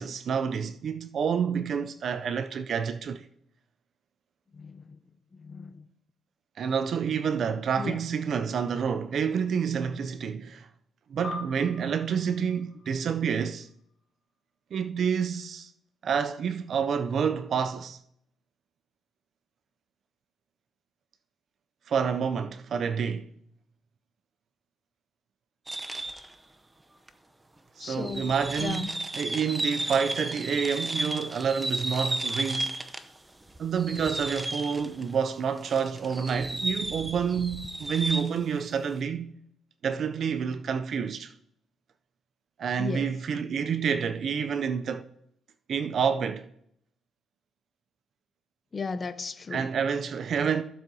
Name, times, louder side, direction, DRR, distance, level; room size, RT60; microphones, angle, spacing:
voice 1, 0.0-3.3 6.6-10.7 11.1-13.7 14.7-15.7 16.0-18.0 21.9-23.3 27.8-32.7 33.6-39.3 39.8-41.3 42.6-45.1 45.7-46.5 49.5-50.6, right 6 dB, 60° right, 0.4 m, -28 dB
voice 2, 4.5-5.0 5.3-5.9 7.8-8.0 27.8-28.9 42.8-43.1 48.7-49.7, left 4 dB, 35° left, 0.6 m, -36 dB
sound 1, 11.2-14.0, left 3 dB, 60° left, 1.1 m, -43 dB
sound 2, 25.7-26.3 27.1-27.2 27.9-33.2 33.5-35.1 35.6-38.4, right 2 dB, 15° right, 0.7 m, -33 dB
15.0 x 7.3 x 2.7 m
cardioid pair, 90°, 0 cm